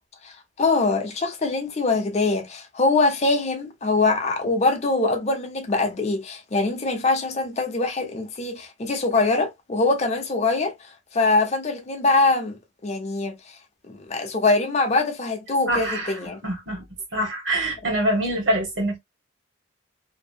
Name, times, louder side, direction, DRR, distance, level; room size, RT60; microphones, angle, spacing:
voice 1, 0.2-13.6 13.9-16.4, left 3 dB, 35° left, 0.6 m, -23 dB
voice 2, 15.7-16.9 17.1-19.0, right 1 dB, 65° right, 1.4 m, -25 dB
2.7 x 2.0 x 2.5 m
head